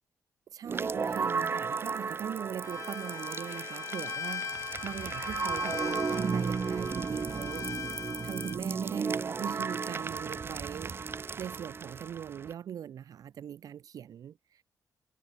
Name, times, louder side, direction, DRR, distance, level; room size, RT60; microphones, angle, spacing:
voice 1, 0.5-7.7 8.2-11.0 11.4-14.4, right 9 dB, 70° right, 1.0 m, -40 dB
sound 1, 0.7-12.5, right 5 dB, 35° right, 1.1 m, -34 dB
Bowed string instrument, 2.6-8.6, left 7 dB, 50° left, 0.7 m, -40 dB
cardioid pair, 100°, 7 cm